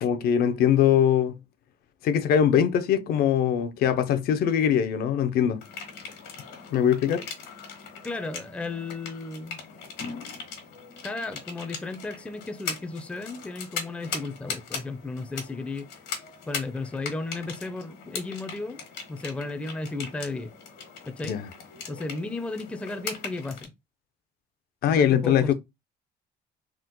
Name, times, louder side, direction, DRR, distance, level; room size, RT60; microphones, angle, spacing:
voice 1, 0.0-1.4 2.0-5.6 6.7-7.2 21.3-21.5 24.8-25.5, left 9 dB, 65° left, 0.5 m, -22 dB
sound 1, 5.6-23.7, left 5 dB, 85° left, 1.2 m, -39 dB
voice 2, 8.0-9.6 11.0-15.9 16.5-18.8 19.1-20.5 21.1-21.4 21.9-23.7 24.9-25.5, left 3 dB, 5° left, 0.4 m, -34 dB
3.6 x 2.0 x 2.9 m
cardioid pair, 110°, 17 cm